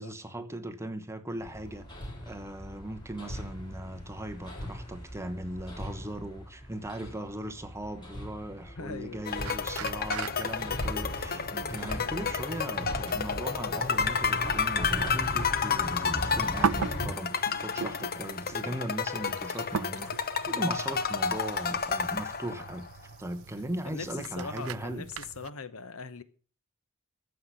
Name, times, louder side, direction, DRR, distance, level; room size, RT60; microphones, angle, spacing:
voice 1, 0.0-1.9 2.2-20.1 20.4-22.9 23.2-25.1, right 1 dB, 10° right, 1.0 m, -38 dB
Hammer, 1.4-17.0, equal, 20° left, 4.1 m, -39 dB
voice 2, 8.8-9.2 11.8-12.2 20.5-20.7 23.8-25.1 25.4-26.2, left 4 dB, 70° left, 1.0 m, -41 dB
sound 1, 9.3-22.9, left 6 dB, 45° left, 0.9 m, -31 dB
sound 2, 9.4-25.5, right 6 dB, 65° right, 0.5 m, -40 dB
14.5 x 5.9 x 8.1 m
head